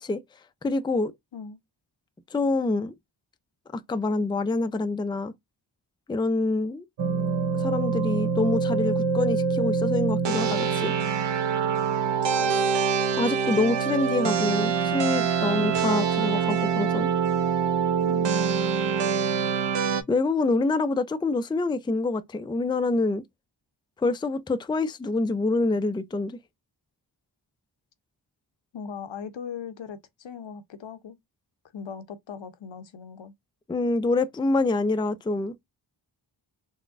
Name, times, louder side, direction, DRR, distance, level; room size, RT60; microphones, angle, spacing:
voice 1, 0.6-1.1 2.3-2.9 3.7-5.3 6.1-6.8 7.5-10.9 13.2-17.1 20.1-23.2 24.0-26.4 33.7-35.5, left 3 dB, 10° left, 0.4 m, -26 dB
sound 1, 7.0-20.0, right 6 dB, 65° right, 0.7 m, -25 dB
voice 2, 12.2-12.7 15.6-15.7 18.0-18.5 28.7-31.2 31.7-33.3, left 6 dB, 70° left, 0.8 m, -39 dB
3.9 x 2.2 x 2.5 m
cardioid pair, 45°, 47 cm